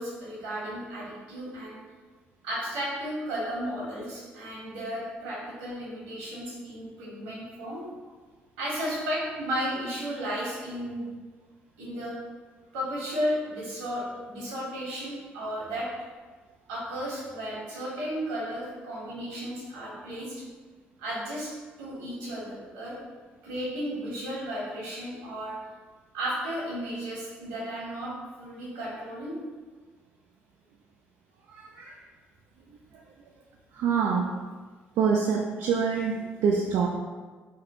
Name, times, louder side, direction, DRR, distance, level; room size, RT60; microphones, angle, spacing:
voice 1, 0.0-1.8 2.4-7.8 8.6-11.1 11.8-12.1 12.7-15.9 16.7-20.4 21.0-21.5 21.8-23.0 23.4-25.6 26.1-28.1 28.4-29.4, equal, 90° right, -7 dB, 1.5 m, -34 dB
voice 2, 31.5-32.0 33.8-34.3 35.0-36.9, right 6 dB, 70° right, 0 dB, 0.4 m, -25 dB
3.6 x 2.3 x 3.7 m, 1.4 s
hypercardioid pair, 50°, 5 cm